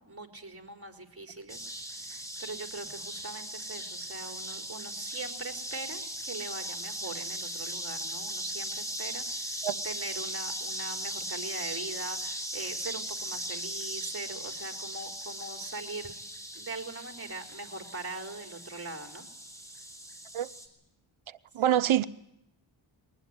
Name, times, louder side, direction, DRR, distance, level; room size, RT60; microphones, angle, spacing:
voice 1, 0.0-16.1 16.5-19.2 21.7-21.8, right 3 dB, 30° right, 4.1 m, -41 dB
sound 1, 1.5-20.7, right 1 dB, 5° left, 4.8 m, -38 dB
voice 2, 21.5-22.1, right 11 dB, 75° right, 0.8 m, -25 dB
21.5 x 19.0 x 9.6 m
cardioid pair, 65°, 48 cm